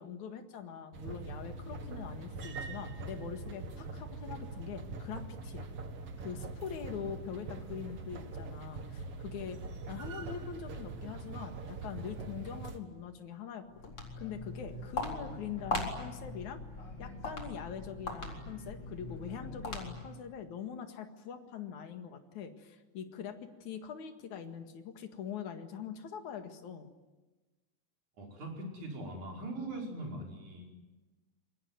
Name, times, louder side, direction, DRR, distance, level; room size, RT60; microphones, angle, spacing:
voice 1, 0.0-5.7 6.2-9.6 9.9-16.6 17.0-26.9, left 7 dB, 75° left, 6 dB, 3.3 m, -43 dB
sound 1, 0.9-12.8, right 3 dB, 50° right, 2.7 m, -43 dB
Walk footsteps, 13.6-20.2, left 2 dB, 45° left, 4.9 m, -40 dB
voice 2, 28.2-30.7, right 1 dB, 80° right, 0 dB, 6.7 m, -41 dB
27.0 x 23.5 x 9.4 m, 1.2 s
omnidirectional pair, 3.4 m